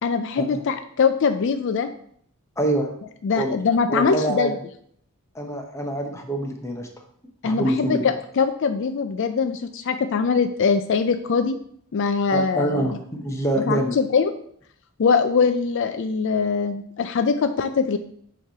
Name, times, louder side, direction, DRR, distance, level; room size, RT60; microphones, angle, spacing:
voice 1, 0.0-1.9 3.2-4.5 7.4-11.6 11.9-12.9 13.7-14.3 15.0-18.0, left 5 dB, 60° left, 9 dB, 0.4 m, -22 dB
voice 2, 2.6-2.9 3.3-3.5 3.9-4.5 5.3-6.9 7.4-8.0 12.3-14.0, right 1 dB, 15° left, 2 dB, 0.9 m, -25 dB
6.5 x 3.2 x 5.5 m, 0.64 s
head